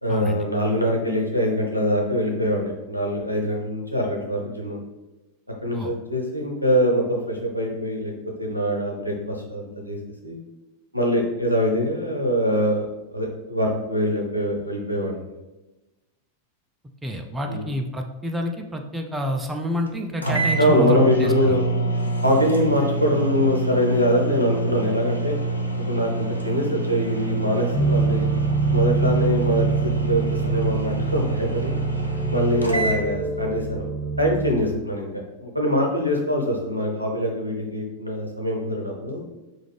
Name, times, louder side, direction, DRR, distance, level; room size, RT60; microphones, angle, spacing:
voice 1, 0.0-4.8 5.6-8.1 8.4-10.0 10.2-10.4 10.9-15.2 17.5-17.7 20.6-21.7 22.2-25.4 25.9-28.3 28.7-29.7 30.1-31.8 32.1-33.9 34.2-35.1 35.4-39.2, equal, 90° right, 0 dB, 0.7 m, -23 dB
voice 2, 17.0-21.3, left 1 dB, 10° right, 3 dB, 0.4 m, -28 dB
sound 1, 19.9-20.0 20.2-33.0, right 2 dB, 90° left, 0.5 m, -26 dB
sound 2, 27.7-34.8, right 4 dB, 45° right, 0.7 m, -25 dB
4.1 x 2.5 x 3.2 m, 1.1 s
figure-of-eight pair, 90°, 0 cm